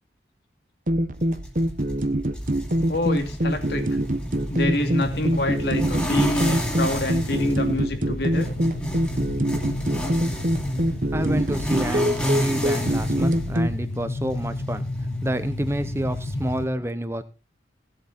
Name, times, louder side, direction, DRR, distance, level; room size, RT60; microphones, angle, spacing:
sound 1, 0.9-13.7, right 1 dB, 45° right, 1.1 m, -25 dB
sound 2, 1.1-16.6, equal, 5° left, 2.7 m, -33 dB
voice 1, 2.9-3.9 4.5-8.5, left 1 dB, 60° left, 5 dB, 2.7 m, -26 dB
sound 3, 5.0-16.7, left 2 dB, 85° left, 1.1 m, -33 dB
voice 2, 11.1-14.9 15.2-17.2, right 1 dB, 15° right, 11 dB, 0.9 m, -28 dB
18.0 x 8.0 x 4.3 m, 0.31 s
head